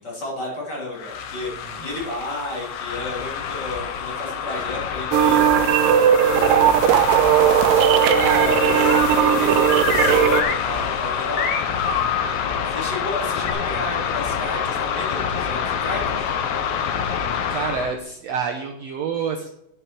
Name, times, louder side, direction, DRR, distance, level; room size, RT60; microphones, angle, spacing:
voice 1, 0.0-6.0 6.3-7.0 7.8-11.6 12.7-16.2, left 1 dB, 30° left, -4 dB, 3.6 m, -32 dB
sound 1, 0.9-18.0, left 7 dB, 85° left, 1.3 m, -27 dB
sound 2, 5.1-10.4, right 9 dB, 90° right, 2.3 m, -17 dB
sound 3, 7.4-8.0 8.8-12.2 13.5-13.6, left 6 dB, 70° left, 2.7 m, -26 dB
voice 2, 17.5-19.5, right 6 dB, 70° right, 2 dB, 1.7 m, -28 dB
10.0 x 7.9 x 4.5 m, 0.82 s
omnidirectional pair, 3.8 m